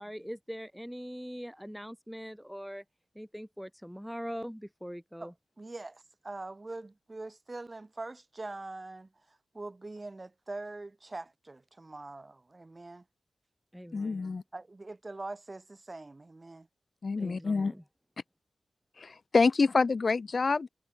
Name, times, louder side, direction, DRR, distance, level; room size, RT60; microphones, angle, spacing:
voice 1, 0.0-2.8 3.2-5.3 13.7-14.4 17.2-17.8, equal, ahead, 1.9 m, -42 dB
voice 2, 5.6-13.0 14.5-16.7, right 2 dB, 25° right, 3.6 m, -43 dB
voice 3, 13.9-14.4 17.0-17.7 19.0-20.7, left 4 dB, 50° left, 0.6 m, -27 dB
wide cardioid pair, 120°, 0 cm